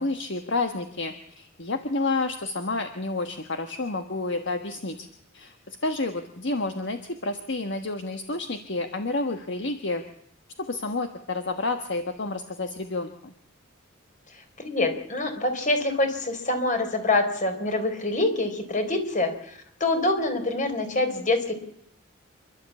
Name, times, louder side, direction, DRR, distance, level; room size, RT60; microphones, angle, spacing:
voice 1, 0.0-5.1 5.3-10.0 10.6-13.3, left 2 dB, 60° left, 6 dB, 1.4 m, -30 dB
voice 2, 14.6-21.5, left 2 dB, 40° left, 6 dB, 4.0 m, -25 dB
28.0 x 12.5 x 8.4 m, 0.72 s
head